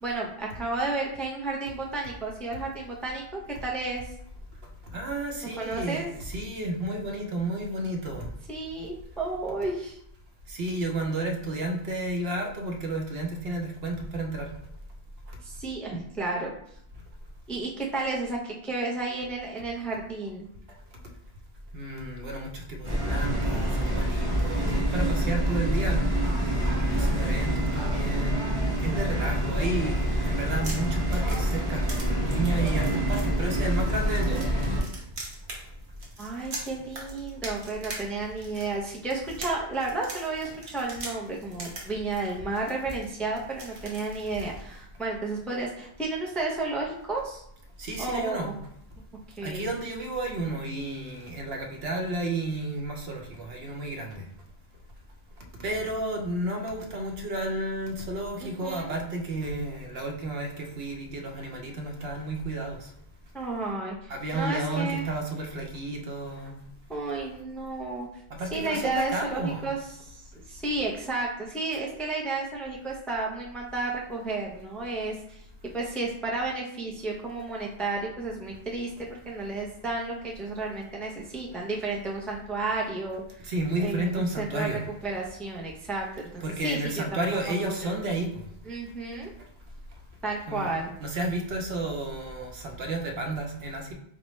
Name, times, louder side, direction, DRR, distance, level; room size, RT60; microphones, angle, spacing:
voice 1, 0.0-4.1 5.6-6.1 8.5-10.0 15.4-16.5 17.5-20.5 36.2-47.4 48.0-48.6 49.4-49.7 58.4-58.9 63.3-65.1 66.9-68.1 68.5-75.4 75.7-83.5 83.8-84.7 85.0-87.2 87.6-88.0 88.6-89.3 90.2-90.9, right 3 dB, ahead, -2 dB, 0.4 m, -32 dB
voice 2, 4.9-8.3 10.5-14.5 15.3-15.4 21.7-26.0 26.9-31.8 32.2-34.4 47.8-48.5 49.4-54.3 55.6-62.9 64.1-66.6 68.3-69.6 83.4-84.8 86.4-88.5 90.5-90.7 91.0-93.9, right 2 dB, 80° right, 2 dB, 0.9 m, -32 dB
sound 1, 22.8-34.8, equal, 30° right, 1.2 m, -26 dB
sound 2, 30.3-44.8, right 1 dB, 60° right, 1.0 m, -42 dB
4.3 x 2.2 x 3.0 m, 0.74 s
omnidirectional pair, 1.0 m